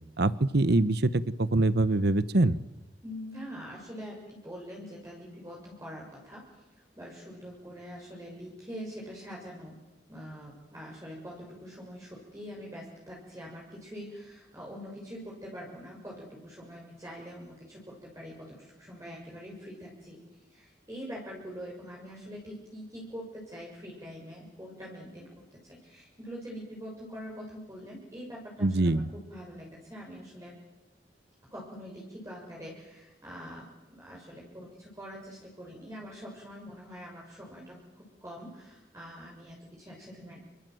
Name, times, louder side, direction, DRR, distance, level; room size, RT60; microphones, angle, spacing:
voice 1, 0.2-2.6 28.6-29.0, right 2 dB, 60° right, 16 dB, 1.0 m, -24 dB
voice 2, 3.0-6.5 6.7-9.8 10.1-30.5 31.5-40.4, equal, 15° right, -4 dB, 6.8 m, -44 dB
29.5 x 24.5 x 7.8 m, 1.0 s
head